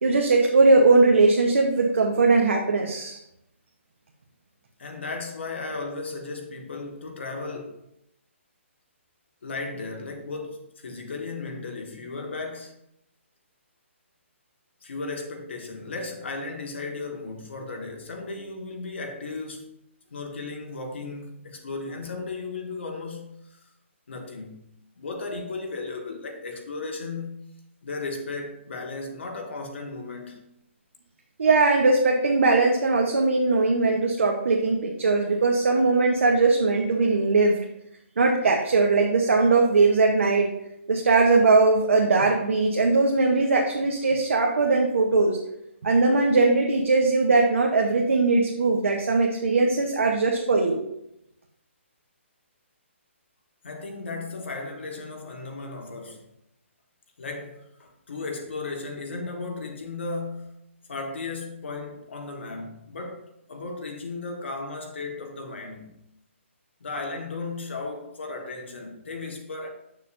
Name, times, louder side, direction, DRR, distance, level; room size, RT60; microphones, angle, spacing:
voice 1, 0.0-3.2 31.4-37.6 38.2-40.5 40.9-45.4 45.8-50.8, right 3 dB, 70° right, 1.0 m, -20 dB
voice 2, 4.8-7.9 9.4-12.7 14.8-19.7 20.1-23.3 24.1-24.6 25.0-27.5 27.8-30.5 53.6-56.3 57.2-60.6 60.9-66.0 66.8-69.7, left 3 dB, 60° left, 1.5 m, -35 dB
8.1 x 6.6 x 2.6 m
hypercardioid pair, 175°, 7 cm